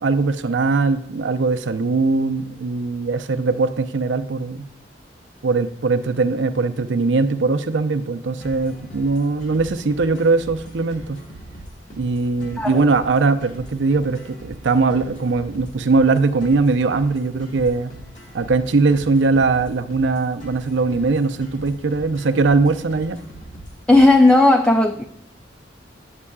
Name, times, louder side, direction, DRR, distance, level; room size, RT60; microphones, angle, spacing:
voice 1, 0.0-4.7 5.4-11.2 12.0-17.9 18.3-23.2, right 3 dB, 75° right, 8 dB, 0.5 m, -20 dB
sound 1, 8.4-24.4, equal, 40° left, 1.2 m, -41 dB
voice 2, 23.9-25.0, left 2 dB, 5° left, 4 dB, 0.3 m, -14 dB
9.7 x 7.4 x 2.3 m, 0.74 s
head